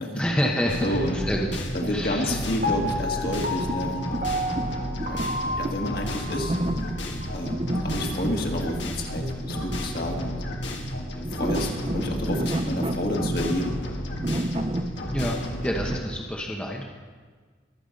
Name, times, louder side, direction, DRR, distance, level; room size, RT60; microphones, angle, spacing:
voice 1, 0.1-1.5 1.9-2.4 15.1-16.8, equal, 5° left, -1 dB, 1.0 m, -28 dB
sound 1, 0.7-16.0, left 1 dB, 75° left, 1.9 m, -33 dB
sound 2, 0.7-16.2, right 1 dB, 30° right, 0.5 m, -33 dB
voice 2, 0.8-1.2 1.7-4.3 5.1-6.6 7.3-10.4 11.1-13.8, left 1 dB, 50° left, 1 dB, 1.9 m, -30 dB
Piano, 2.6-6.7 7.2-7.3, left 1 dB, 45° right, 1.4 m, -31 dB
23.0 x 8.2 x 5.2 m, 1.5 s
head